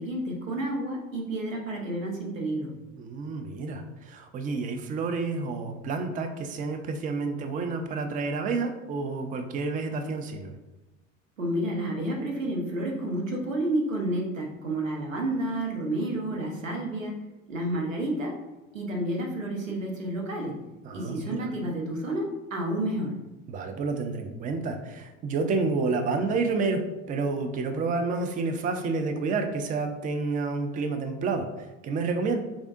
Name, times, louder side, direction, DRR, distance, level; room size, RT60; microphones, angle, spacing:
voice 1, 0.0-2.7 11.4-17.2 17.5-18.3 18.7-20.5 20.9-22.2 22.5-23.1, right 1 dB, 85° right, 0 dB, 0.9 m, -30 dB
voice 2, 3.0-10.5 20.8-21.4 23.5-32.4, right 4 dB, 20° right, 6 dB, 0.4 m, -29 dB
3.6 x 3.4 x 2.5 m, 1.0 s
figure-of-eight pair, 75°, 38 cm